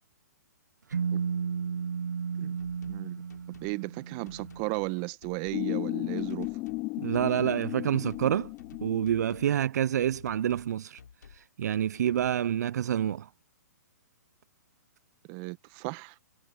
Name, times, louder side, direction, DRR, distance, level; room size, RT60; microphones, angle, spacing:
sound 1, 0.9-4.8, right 6 dB, 85° right, 1.2 m, -34 dB
sound 2, 2.6-3.0 3.3-3.8 4.3-4.9 5.2-5.7 6.2-6.9 7.1-7.6 8.1-9.5 10.0-10.7 11.0-11.5 11.9-12.3, left 7 dB, 80° left, 3.3 m, -53 dB
voice 1, 2.9-3.2 3.6-6.5 15.3-16.2, right 28 dB, 35° right, 1.2 m, -35 dB
sound 3, 5.5-9.6, left 23 dB, 30° left, 0.5 m, -34 dB
voice 2, 7.0-8.5 8.8-11.0 11.3-13.3, right 10 dB, 70° right, 0.4 m, -28 dB
hypercardioid pair, 135°, 9 cm